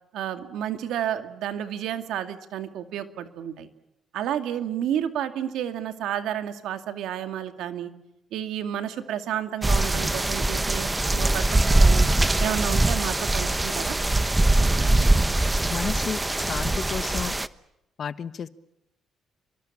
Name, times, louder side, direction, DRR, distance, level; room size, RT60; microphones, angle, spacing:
voice 1, 0.1-3.7 4.1-7.9 8.3-12.1 12.4-14.0, right 10 dB, 85° right, 8 dB, 2.4 m, -31 dB
sound 1, 9.6-17.5, right 2 dB, 15° right, 1.1 m, -22 dB
Bowed string instrument, 11.5-15.2, right 5 dB, 40° right, 1.6 m, -42 dB
voice 2, 15.7-17.4 18.0-18.5, left 7 dB, 55° left, 13 dB, 1.3 m, -32 dB
29.0 x 23.5 x 7.4 m, 0.87 s
cardioid pair, 90°, 0 cm